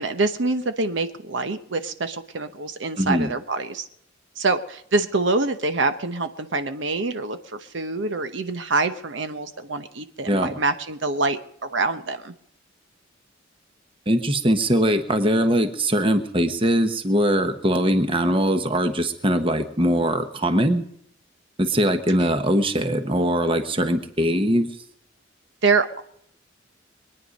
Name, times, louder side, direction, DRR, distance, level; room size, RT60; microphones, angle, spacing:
voice 1, 0.0-3.9 4.4-12.3 25.6-26.0, right 3 dB, 70° right, 9 dB, 0.9 m, -25 dB
voice 2, 3.0-3.3 10.3-10.5 14.1-20.8 21.6-24.7, equal, 25° right, 8 dB, 1.2 m, -21 dB
23.0 x 9.8 x 5.3 m, 0.71 s
head